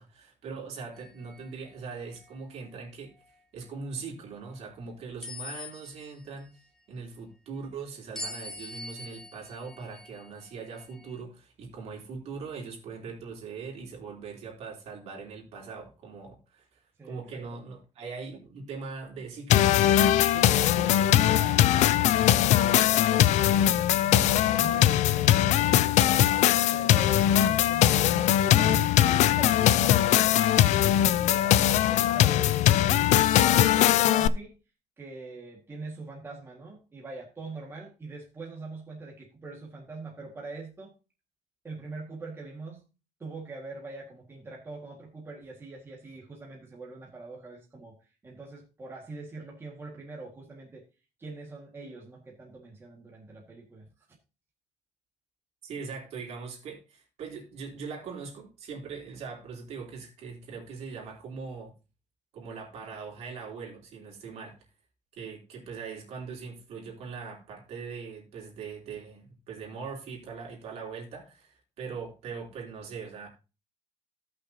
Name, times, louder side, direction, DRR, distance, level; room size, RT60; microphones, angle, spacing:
voice 1, 0.0-3.1 3.5-6.5 6.9-19.9 55.6-61.7 62.3-64.6 65.1-73.3, right 5 dB, 60° right, 3.5 m, -41 dB
sound 1, 1.0-1.5 2.1-2.4 5.2-6.3 8.2-11.2, left 2 dB, 5° left, 1.5 m, -43 dB
voice 2, 17.0-17.4 20.3-26.3 26.7-34.6 35.0-40.9 41.6-42.9 43.2-50.8 51.2-53.9, right 3 dB, 20° right, 1.9 m, -43 dB
sound 2, 19.5-34.3, left 12 dB, 75° left, 0.5 m, -21 dB
17.0 x 6.0 x 2.8 m
cardioid pair, 180°, 12 cm